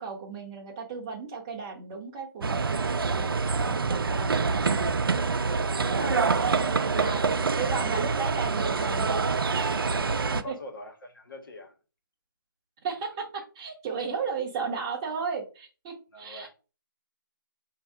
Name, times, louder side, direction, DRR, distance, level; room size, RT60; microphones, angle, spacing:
voice 1, 0.0-3.3 3.7-4.3 4.7-4.8 5.9-7.2 7.6-9.2 10.3-10.6 12.8-16.5, right 5 dB, 15° right, 0.6 m, -35 dB
sound 1, 2.4-10.4, right 4 dB, 85° right, 0.5 m, -26 dB
voice 2, 5.8-7.4 9.8-11.8 16.1-16.5, left 1 dB, 70° left, 1.4 m, -44 dB
4.0 x 2.7 x 4.7 m
hypercardioid pair, 170°, 12 cm